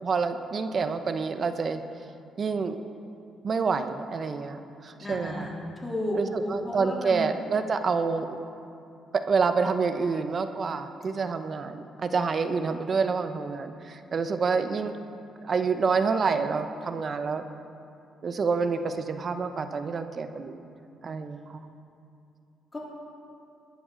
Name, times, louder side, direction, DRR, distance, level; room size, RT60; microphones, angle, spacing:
voice 1, 0.0-1.8 2.4-2.8 3.4-5.5 6.1-8.3 9.1-14.9 15.4-17.4 18.2-20.6 21.0-21.6, right 5 dB, 45° right, 9 dB, 0.9 m, -28 dB
voice 2, 5.0-7.2 22.7-22.8, left 1 dB, 20° left, -4 dB, 3.6 m, -32 dB
20.5 x 10.5 x 4.0 m, 2.6 s
cardioid pair, 90°, 0 cm